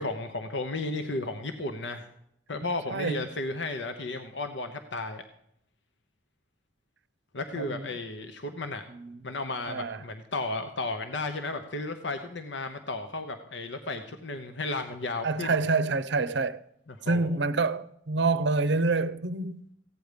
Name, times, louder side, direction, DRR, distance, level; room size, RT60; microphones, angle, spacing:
voice 1, 0.0-2.1 2.5-5.2 7.3-8.8 9.2-15.5 17.0-17.4, left 2 dB, 65° left, 1.0 m, -34 dB
voice 2, 2.9-3.2 7.6-7.9 8.9-9.2 9.7-10.0 15.2-16.6 17.0-19.7, right 3 dB, 65° right, 0.6 m, -27 dB
16.0 x 9.5 x 5.1 m
head